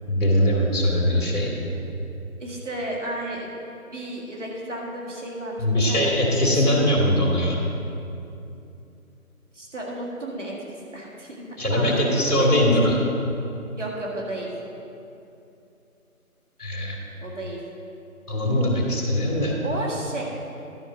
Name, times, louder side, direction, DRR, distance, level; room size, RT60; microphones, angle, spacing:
voice 1, 0.1-1.5 5.6-7.6 11.6-13.0 16.6-17.0 18.3-19.5, equal, 80° left, -2 dB, 2.4 m, -21 dB
voice 2, 2.4-3.5 3.9-6.9 9.5-12.6 13.7-14.5 17.2-17.6 19.6-20.2, right 1 dB, 55° right, -3 dB, 2.0 m, -33 dB
11.5 x 5.7 x 5.1 m, 2.7 s
figure-of-eight pair, 165°, 44 cm